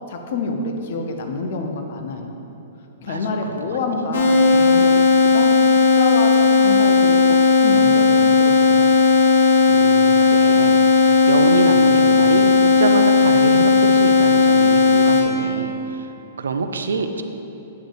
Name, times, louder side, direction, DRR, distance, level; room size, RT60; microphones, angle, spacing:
voice 1, 0.1-2.3 3.0-5.5 5.9-8.9, left 3 dB, 60° left, 4 dB, 0.8 m, -27 dB
sound 1, 4.1-15.2, left 4 dB, 75° left, 1.2 m, -15 dB
voice 2, 9.7-16.1 16.4-17.2, right 4 dB, 85° right, 8 dB, 0.4 m, -25 dB
8.4 x 4.0 x 4.8 m, 2.9 s
hypercardioid pair, 125°, 0 cm